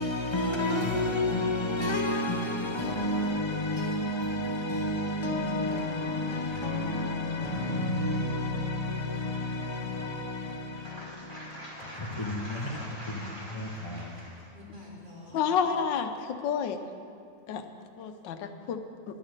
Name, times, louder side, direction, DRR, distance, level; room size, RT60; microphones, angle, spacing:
voice 1, 0.0-14.2, left 1 dB, 20° left, 0.8 m, -31 dB
voice 2, 10.7-15.4, equal, 25° right, 3.6 m, -44 dB
voice 3, 15.3-16.8 17.5-17.6 18.0-18.8, left 6 dB, 75° left, 1.5 m, -29 dB
12.0 x 10.5 x 6.7 m
omnidirectional pair, 2.0 m